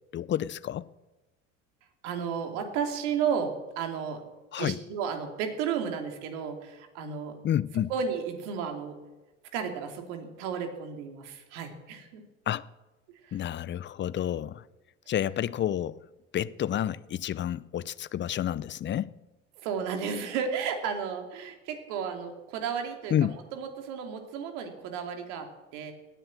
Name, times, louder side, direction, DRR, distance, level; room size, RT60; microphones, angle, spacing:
voice 1, 0.1-0.9 4.5-4.8 7.4-7.9 12.5-12.7 13.3-14.6 15.1-16.0 16.3-19.1 23.1-23.4, left 10 dB, 30° left, 0.6 m, -29 dB
voice 2, 2.0-4.2 4.6-7.4 7.9-9.0 9.5-12.2 13.2-13.4 19.6-25.9, right 7 dB, 65° right, 2.9 m, -33 dB
17.5 x 10.0 x 7.5 m
hypercardioid pair, 75°, 38 cm